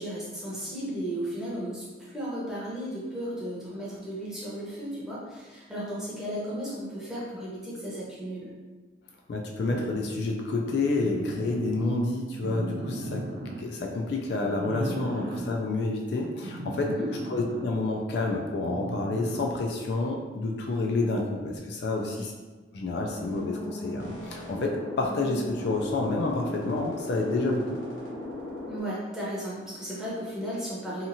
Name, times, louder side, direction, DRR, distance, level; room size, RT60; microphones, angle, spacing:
voice 1, 0.0-8.5 16.8-17.1 21.9-22.3 28.7-31.1, right 1 dB, 5° right, -8 dB, 0.7 m, -35 dB
voice 2, 9.3-13.2 13.6-16.9 17.3-22.3 22.7-27.8, left 2 dB, 60° left, 1 dB, 0.3 m, -29 dB
sound 1, 9.7-10.1 11.0-11.9 12.4-13.6 14.4-15.5 16.4-17.7 18.7-19.6 21.5-21.6, right 1 dB, 70° right, 0.4 m, -36 dB
sound 2, 23.1-28.8, left 1 dB, 85° left, 0.9 m, -37 dB
2.8 x 2.4 x 2.6 m, 1.3 s
head